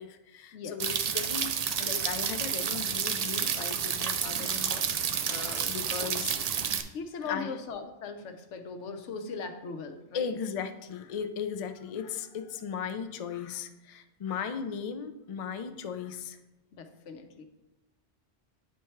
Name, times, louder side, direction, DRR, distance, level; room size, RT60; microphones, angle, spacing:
voice 1, 0.0-6.4 7.2-7.5 10.1-16.4, left 7 dB, 60° left, 8 dB, 0.3 m, -37 dB
sound 1, 0.8-6.8, right 7 dB, 80° right, 0.3 m, -30 dB
voice 2, 5.3-6.1 6.9-10.4 16.7-17.4, left 4 dB, 80° left, 6 dB, 1.1 m, -40 dB
9.2 x 4.5 x 3.2 m, 1.0 s
omnidirectional pair, 1.2 m